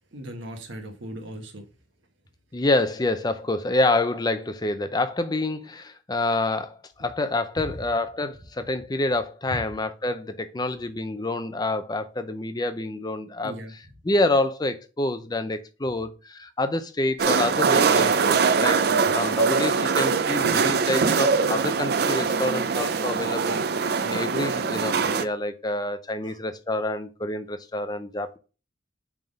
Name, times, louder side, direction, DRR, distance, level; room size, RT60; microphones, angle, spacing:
voice 1, 0.1-1.6 9.5-9.6 13.4-13.7 26.2-26.4, equal, 70° right, 1.2 m, -37 dB
voice 2, 2.5-13.5 14.0-23.6 24.0-28.4, left 2 dB, 20° left, 0.5 m, -27 dB
sound 1, 17.2-25.3, right 5 dB, 50° right, 0.4 m, -22 dB
5.7 x 3.5 x 5.2 m
head